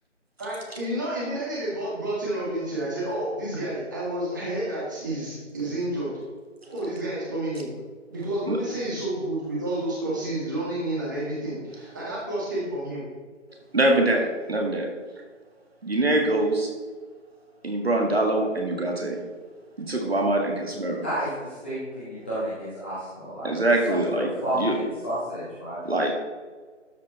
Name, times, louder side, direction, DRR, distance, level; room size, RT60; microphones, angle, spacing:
voice 1, 0.4-6.1 6.7-7.7 8.1-13.0, right 1 dB, 15° right, -6 dB, 1.7 m, -30 dB
voice 2, 13.7-14.9 15.8-16.7 17.6-19.2 19.9-21.1 23.4-24.3 24.6-24.7 25.8-26.1, right 1 dB, 55° right, 2 dB, 1.8 m, -23 dB
voice 3, 21.0-23.5 23.9-25.8, equal, 10° left, -12 dB, 1.4 m, -31 dB
12.5 x 5.2 x 4.2 m, 1.5 s
figure-of-eight pair, 165°, 37 cm